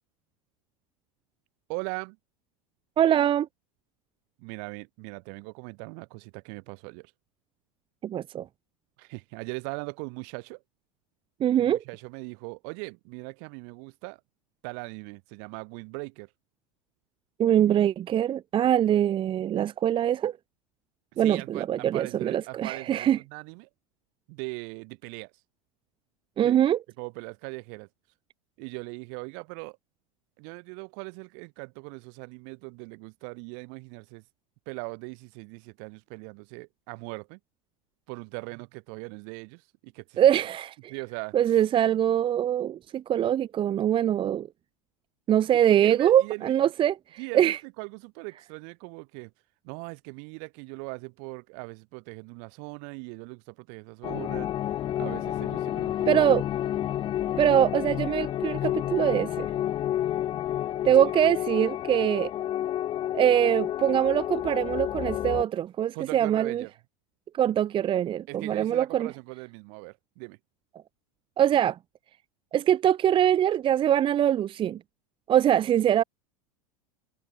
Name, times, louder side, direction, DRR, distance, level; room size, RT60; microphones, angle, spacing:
voice 1, 1.7-2.2 4.4-7.1 9.0-10.6 11.5-14.2 14.6-16.3 17.6-17.8 18.8-18.9 21.1-23.7 24.3-25.3 26.4-26.6 27.0-27.9 28.6-29.8 30.4-34.2 34.7-37.4 38.1-40.2 40.9-41.6 45.8-46.6 47.2-49.3 49.6-54.5 55.0-56.3 61.0-61.1 65.9-66.7 68.3-70.4, right 40 dB or more, 60° right, 5.4 m, -40 dB
voice 2, 3.0-3.5 8.0-8.4 11.4-11.8 17.4-20.4 21.2-23.2 26.4-26.8 40.2-40.9 41.3-44.5 45.3-47.6 56.1-56.4 57.4-59.5 60.8-62.3 63.1-66.6 67.3-69.1 71.4-71.8 72.5-74.8 75.3-76.0, right 10 dB, 30° right, 0.8 m, -23 dB
sound 1, 54.0-65.4, left 12 dB, 30° left, 0.4 m, -30 dB
hypercardioid pair, 100°, 17 cm